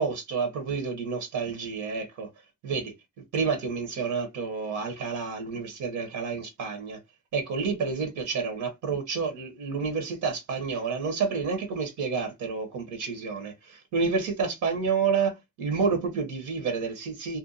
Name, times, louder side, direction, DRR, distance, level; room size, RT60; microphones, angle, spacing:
voice 1, 0.0-2.3 2.6-2.9 3.3-7.0 7.3-17.4, right 5 dB, 80° right, 0.9 m, -29 dB
2.6 x 2.2 x 2.6 m
cardioid pair, 90°, 30 cm